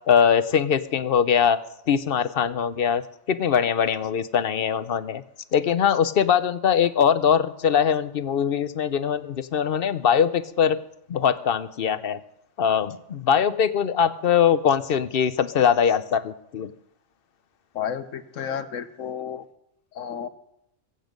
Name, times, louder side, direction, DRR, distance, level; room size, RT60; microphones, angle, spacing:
voice 1, 0.1-1.6 1.9-3.0 3.3-5.2 5.5-10.8 11.1-12.2 12.6-16.7, left 7 dB, 55° left, 13 dB, 0.8 m, -22 dB
voice 2, 17.7-19.4 19.9-20.3, left 8 dB, 85° left, 12 dB, 1.3 m, -32 dB
22.5 x 8.4 x 5.2 m, 0.77 s
omnidirectional pair, 1.3 m